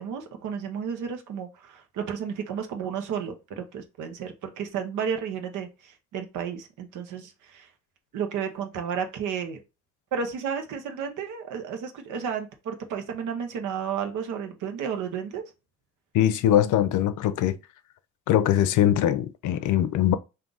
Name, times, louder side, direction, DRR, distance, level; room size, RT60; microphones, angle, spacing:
voice 1, 0.0-7.7 8.1-9.6 10.1-15.4, right 7 dB, 80° right, 1.0 m, -32 dB
voice 2, 16.1-17.6 18.3-20.2, left 11 dB, 75° left, 0.5 m, -22 dB
3.9 x 2.7 x 3.6 m
cardioid pair, 90°, 30 cm